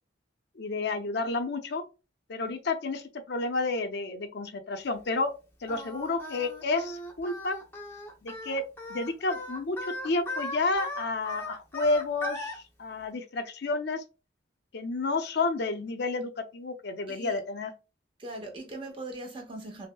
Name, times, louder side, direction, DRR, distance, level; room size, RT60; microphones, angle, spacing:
voice 1, 0.6-1.8 2.3-5.3 5.6-7.6 8.2-8.6 8.9-14.0 14.7-17.7, left 3 dB, 60° left, 0.5 m, -30 dB
Singing, 5.7-12.6, left 1 dB, 10° left, 0.6 m, -38 dB
voice 2, 17.1-17.4 18.2-19.9, right 2 dB, 25° right, 0.8 m, -40 dB
5.3 x 2.0 x 2.2 m
head